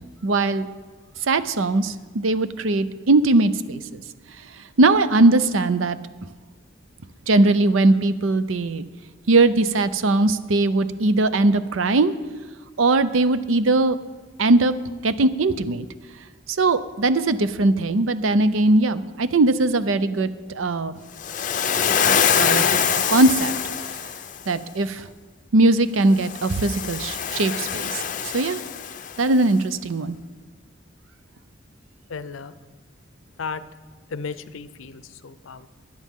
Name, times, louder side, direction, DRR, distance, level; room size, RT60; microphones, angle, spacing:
voice 1, 0.2-0.7 1.3-4.0 4.8-6.0 7.3-8.8 9.3-12.1 12.8-14.0 14.4-14.7 15.0-15.9 16.6-20.9 22.4-22.8 23.1-23.5 24.5-25.1 25.5-28.0 28.3-28.6 29.2-30.2, right 2 dB, 85° right, 13 dB, 0.6 m, -20 dB
Waves surf, 21.2-24.4 26.2-29.3, left 7 dB, 40° left, 0.5 m, -24 dB
voice 2, 32.1-32.5 33.4-33.6 34.1-35.7, left 5 dB, 85° left, 13 dB, 0.6 m, -34 dB
17.5 x 10.5 x 3.7 m, 1.4 s
head